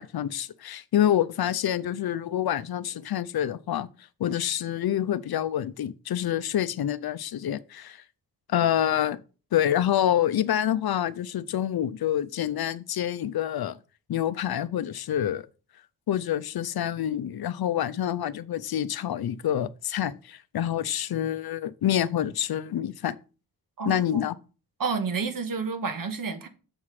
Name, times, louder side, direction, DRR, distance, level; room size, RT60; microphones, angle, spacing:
voice 1, 0.0-3.9 4.2-8.0 8.5-9.2 9.5-13.8 14.1-15.5 16.1-23.2 23.9-24.4, left 11 dB, 85° left, 0.6 m, -27 dB
voice 2, 23.8-24.3 24.8-26.5, right 5 dB, 65° right, 1.2 m, -30 dB
7.2 x 4.8 x 5.7 m
wide cardioid pair, 170°, 36 cm